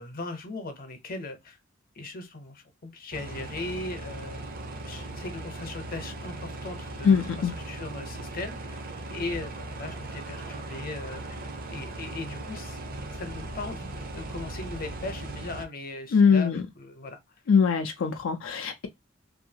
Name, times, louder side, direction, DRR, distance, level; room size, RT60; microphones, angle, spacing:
voice 1, 0.0-1.6 1.9-4.4 4.8-8.8 9.1-11.4 11.7-12.8 13.1-17.2, left 2 dB, 45° left, 0.8 m, -38 dB
sound 1, 3.1-15.7, right 2 dB, 45° right, 0.6 m, -38 dB
voice 2, 7.0-7.5 16.1-16.7 17.5-18.9, left 6 dB, 80° left, 0.4 m, -22 dB
2.7 x 2.6 x 2.6 m
head